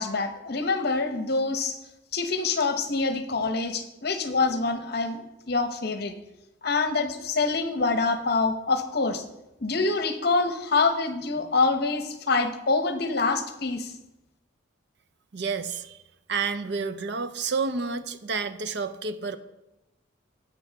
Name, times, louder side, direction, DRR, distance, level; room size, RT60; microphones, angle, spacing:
voice 1, 0.0-1.8 2.1-6.1 6.6-9.2 9.6-13.9, left 3 dB, 50° left, 8 dB, 0.9 m, -26 dB
voice 2, 15.3-16.0 16.3-19.4, right 4 dB, 55° right, 12 dB, 0.6 m, -30 dB
11.5 x 8.2 x 3.5 m, 0.94 s
head